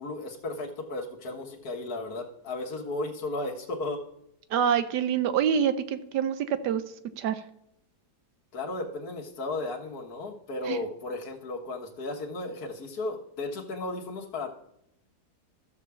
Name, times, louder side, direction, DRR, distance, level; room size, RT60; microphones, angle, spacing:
voice 1, 0.0-4.0 8.5-14.5, left 2 dB, 65° left, -2 dB, 1.7 m, -34 dB
voice 2, 4.5-6.8 7.2-7.4 10.7-10.8, right 8 dB, 85° right, 11 dB, 1.3 m, -26 dB
13.0 x 4.9 x 6.9 m, 0.79 s
omnidirectional pair, 1.8 m